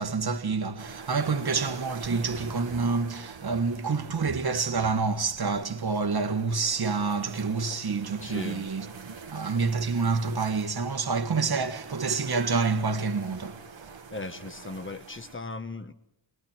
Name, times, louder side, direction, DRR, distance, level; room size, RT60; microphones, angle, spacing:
voice 1, 0.0-13.6, right 4 dB, 50° right, 1.7 m, -28 dB
sound 1, 0.8-15.4, right 5 dB, 70° right, 1.8 m, -45 dB
voice 2, 8.2-8.7 14.1-15.9, left 3 dB, 25° left, 1.4 m, -37 dB
30.0 x 22.0 x 4.5 m
wide cardioid pair, 155°, 47 cm